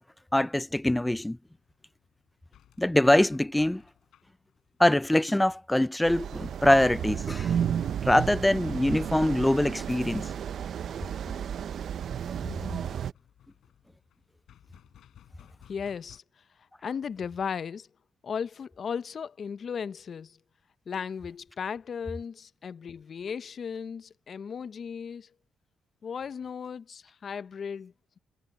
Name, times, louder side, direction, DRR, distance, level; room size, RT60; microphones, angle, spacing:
voice 1, 0.3-1.4 2.8-3.8 4.8-7.6 8.0-10.3, left 1 dB, 10° left, 0.5 m, -23 dB
sound 1, 1.4-16.2, left 11 dB, 70° left, 6.6 m, -58 dB
sound 2, 6.1-13.1, right 8 dB, 60° right, 0.6 m, -32 dB
voice 2, 15.7-16.2 16.6-17.9 18.2-20.4 20.9-25.3 26.0-27.9, left 6 dB, 50° left, 0.6 m, -36 dB
cardioid pair, 90°, 0 cm